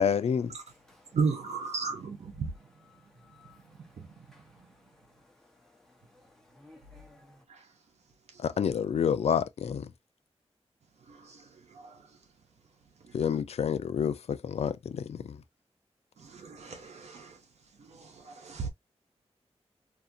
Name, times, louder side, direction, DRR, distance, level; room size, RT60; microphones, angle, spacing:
voice 1, 0.0-0.6 8.4-9.9 13.1-15.4, left 7 dB, 70° left, 0.4 m, -28 dB
voice 2, 0.6-1.2 2.3-7.4, left 2 dB, 5° left, 1.1 m, -60 dB
voice 3, 1.1-2.5 4.0-4.1 7.5-7.6 11.1-12.0 13.1-13.2 16.2-17.4 17.8-18.7, right 5 dB, 85° right, 0.8 m, -35 dB
2.7 x 2.4 x 2.6 m
wide cardioid pair, 135°, 11 cm